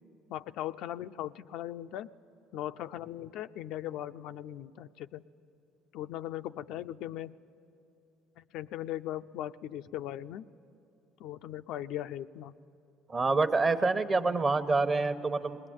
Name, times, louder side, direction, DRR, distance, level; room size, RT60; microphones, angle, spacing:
voice 1, 0.3-2.1 2.5-5.2 5.9-7.4 8.4-10.5 11.2-12.5, left 12 dB, 70° left, 10 dB, 0.4 m, -39 dB
voice 2, 13.1-15.6, right 3 dB, 30° right, 9 dB, 1.0 m, -27 dB
20.0 x 19.5 x 8.8 m, 2.7 s
supercardioid pair, 85°, 0 cm